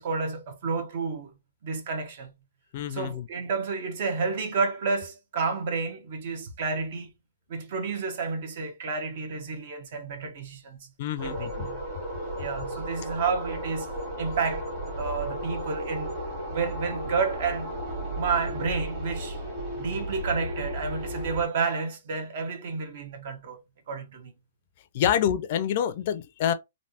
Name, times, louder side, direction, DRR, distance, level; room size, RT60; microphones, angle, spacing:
voice 1, 0.0-1.3 1.6-2.3 2.9-7.1 7.5-10.9 11.2-11.8 12.3-13.9 14.2-14.7 15.0-16.2 16.5-17.7 18.2-19.4 19.7-23.6 23.9-24.3, right 4 dB, 50° right, 1.1 m, -30 dB
voice 2, 2.7-3.3 11.0-11.7 24.9-26.5, left 10 dB, 45° left, 0.4 m, -27 dB
sound 1, 11.2-21.5, right 1 dB, 30° right, 1.6 m, -34 dB
3.2 x 2.6 x 2.8 m
hypercardioid pair, 150°, 0 cm